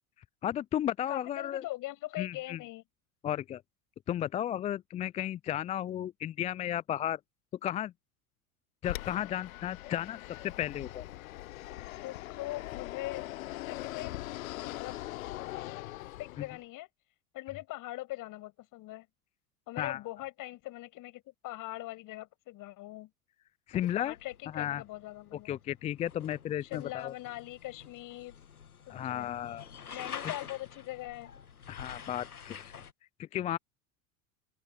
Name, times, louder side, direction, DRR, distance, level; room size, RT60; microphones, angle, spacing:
voice 1, 0.4-1.6 2.2-2.6 3.2-3.6 4.1-7.2 7.6-7.9 8.8-10.2 10.4-11.0 19.8-20.0 23.7-24.1 24.5-24.8 25.5-27.1 28.9-29.6 31.7-32.7 33.2-33.6, left 11 dB, 15° left, 0.3 m, -34 dB
voice 2, 1.1-2.8 12.0-13.3 13.7-14.1 14.6-15.0 16.2-16.9 17.3-19.1 19.7-23.1 23.7-25.6 26.6-28.4 28.9-29.5 29.9-31.3, left 17 dB, 45° left, 6.2 m, -42 dB
Fixed-wing aircraft airplane, 8.8-16.6, left 17 dB, 70° left, 0.7 m, -41 dB
sound 1, 23.8-32.9, left 7 dB, 85° left, 1.5 m, -48 dB
open air
figure-of-eight pair, 75°, 43 cm